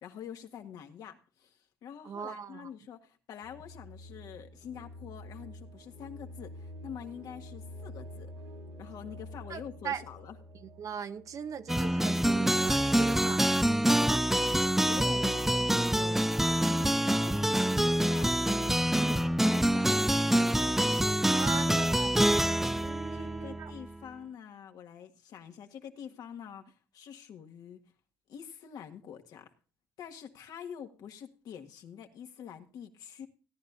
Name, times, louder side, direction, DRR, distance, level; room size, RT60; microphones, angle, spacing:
voice 1, 0.0-8.3 8.8-10.4 14.3-19.9 23.1-27.8 28.3-29.5 30.0-33.3, left 8 dB, 70° left, 1.7 m, -46 dB
voice 2, 2.0-2.7 9.5-10.0 10.8-13.5 21.3-22.1 22.8-23.7, right 7 dB, 55° right, 0.9 m, -39 dB
sound 1, 3.4-13.2, left 1 dB, 90° right, 2.1 m, -48 dB
sound 2, 11.7-24.0, right 1 dB, 5° right, 0.5 m, -26 dB
17.0 x 10.5 x 2.6 m
supercardioid pair, 75°, 7 cm